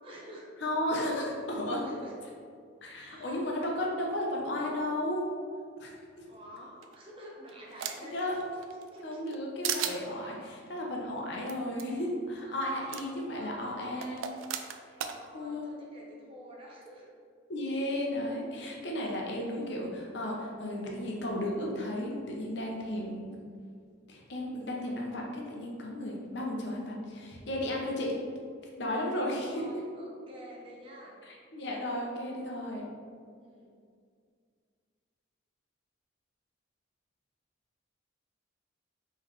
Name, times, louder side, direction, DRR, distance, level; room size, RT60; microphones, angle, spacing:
voice 1, 0.0-0.5 1.8-2.2 3.0-3.4 6.2-8.3 8.9-9.3 10.2-10.7 11.5-11.6 12.4-13.7 15.1-17.1 19.3-19.6 29.3-31.2 33.4-33.8, equal, 25° right, -3 dB, 0.6 m, -49 dB
voice 2, 0.6-1.9 2.8-5.2 5.8-6.2 8.1-8.4 9.0-14.3 15.3-15.7 17.5-23.3 24.1-28.2 28.8-29.8 31.3-32.9, left 1 dB, 60° left, -2 dB, 0.7 m, -34 dB
sound 1, 6.8-8.2 8.6-9.4 9.6-10.0 11.5-11.6 11.8-11.9 12.9-13.0 14.0-15.2, right 8 dB, 85° right, 0.3 m, -35 dB
3.9 x 3.2 x 3.0 m, 2.1 s
head